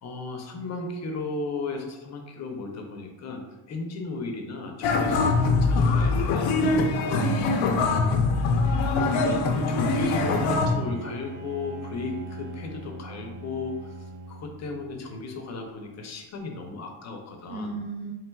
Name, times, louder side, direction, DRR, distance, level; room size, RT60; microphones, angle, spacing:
voice 1, 0.0-6.5 9.1-13.9 14.3-17.7, left 3 dB, 35° left, 3 dB, 0.5 m, -35 dB
sound 1, 4.8-10.8, left 3 dB, 85° left, 0.6 m, -23 dB
voice 2, 7.1-8.5 17.5-18.1, right 3 dB, 30° right, -2 dB, 0.7 m, -37 dB
Bowed string instrument, 10.0-14.9, right 2 dB, 65° right, 0.8 m, -39 dB
4.4 x 3.3 x 2.2 m, 1.1 s
cardioid pair, 170°, 45 cm